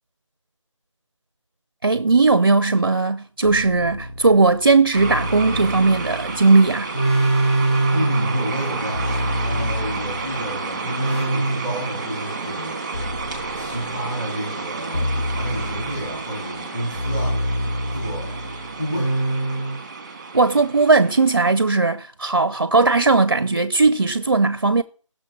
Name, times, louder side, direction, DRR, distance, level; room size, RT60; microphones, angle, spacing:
voice 1, 1.8-6.9 20.3-24.8, right 3 dB, 45° right, 0.7 m, -17 dB
sound 1, 3.4-10.4 10.9-12.1 12.9-14.1 14.9-16.2 16.9-19.8, right 1 dB, 55° left, 3.9 m, -25 dB
sound 2, 4.9-21.9, right 4 dB, 15° right, 1.6 m, -31 dB
voice 2, 7.9-9.0 9.4-12.9 13.5-17.4 17.9-18.4 18.8-19.2, equal, 20° left, 3.6 m, -30 dB
16.5 x 6.7 x 6.1 m
figure-of-eight pair, 175°, 17 cm